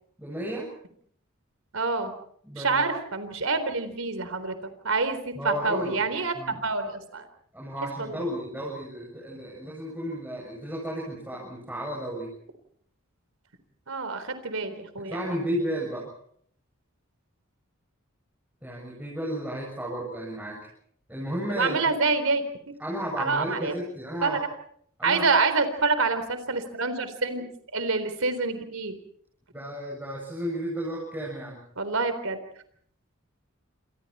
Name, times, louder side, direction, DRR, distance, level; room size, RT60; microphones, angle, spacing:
voice 1, 0.2-0.7 2.4-2.9 5.3-6.1 6.3-6.6 7.5-12.3 15.0-16.1 18.6-20.6 21.1-22.0 22.8-24.4 25.0-25.2 29.5-31.6, equal, 10° right, -3 dB, 7.4 m, -33 dB
voice 2, 1.7-2.1 2.6-6.3 6.6-7.3 7.8-8.3 13.9-15.2 21.5-22.4 23.2-23.7 24.2-24.4 25.0-27.5 27.7-28.9 31.8-32.4, right 4 dB, 80° right, 10 dB, 3.9 m, -27 dB
30.0 x 27.5 x 4.4 m, 0.65 s
head